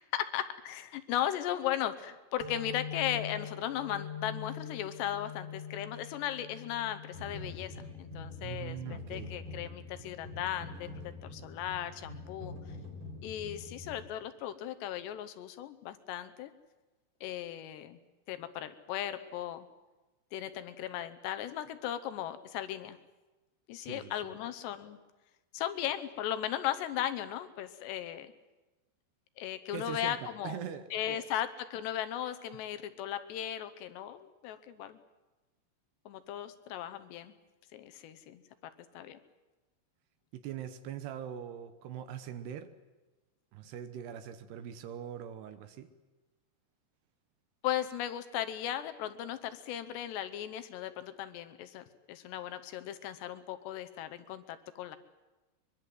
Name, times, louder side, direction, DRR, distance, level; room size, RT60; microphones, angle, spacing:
voice 1, 0.1-10.9 11.2-12.5 13.2-16.5 17.2-18.0 18.3-19.7 20.3-23.0 23.7-25.0 25.5-28.3 29.4-30.6 30.9-35.0 36.1-37.3 37.7-38.4 38.9-39.2 47.6-55.0, left 11 dB, 75° left, 10 dB, 3.0 m, -37 dB
sound 1, 2.4-9.7, left 7 dB, 10° left, 1.4 m, -44 dB
sound 2, 7.1-14.1, left 2 dB, 45° right, 5.3 m, -45 dB
voice 2, 8.4-9.3 23.8-24.3 29.7-31.3 40.3-42.7 43.5-45.9, right 9 dB, 75° right, 10 dB, 2.9 m, -42 dB
23.0 x 22.5 x 7.8 m, 1.1 s
omnidirectional pair, 5.2 m